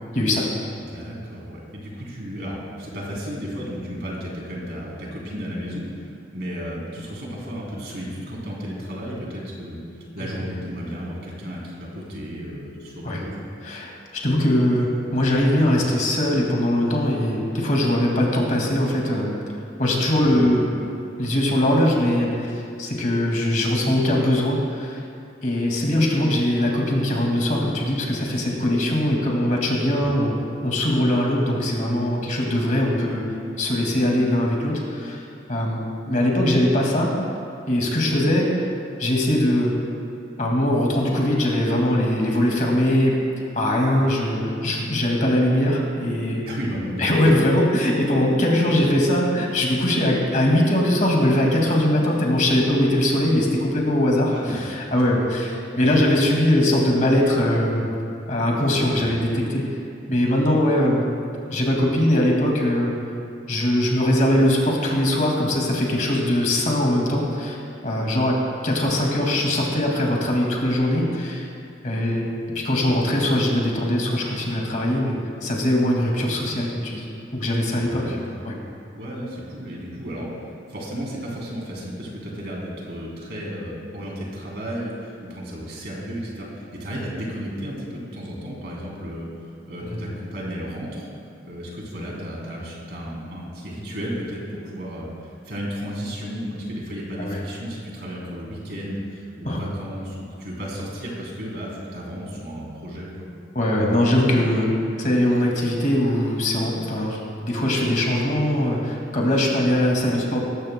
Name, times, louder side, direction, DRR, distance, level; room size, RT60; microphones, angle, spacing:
voice 1, 0.1-0.5 13.0-13.2 13.6-19.3 19.8-20.6 21.2-25.0 25.4-30.3 30.6-33.2 33.6-35.2 35.5-35.8 36.1-37.2 37.7-38.5 39.0-39.7 40.4-43.2 43.6-46.4 47.0-57.8 58.3-59.7 60.1-61.0 61.4-62.9 63.5-68.4 68.6-71.5 71.8-72.3 72.5-78.2 78.4-78.6 89.8-90.2 97.2-97.4 99.4-99.6 103.5-104.7 105.0-110.4, left 1 dB, 40° left, -1 dB, 2.1 m, -21 dB
voice 2, 0.9-13.4 20.2-20.5 30.0-30.1 46.4-47.2 54.3-54.6 56.1-56.2 58.9-59.2 68.0-68.2 77.6-78.4 78.9-91.1 91.4-103.3, equal, 55° right, -4 dB, 3.3 m, -33 dB
19.0 x 15.0 x 2.2 m, 2.5 s
head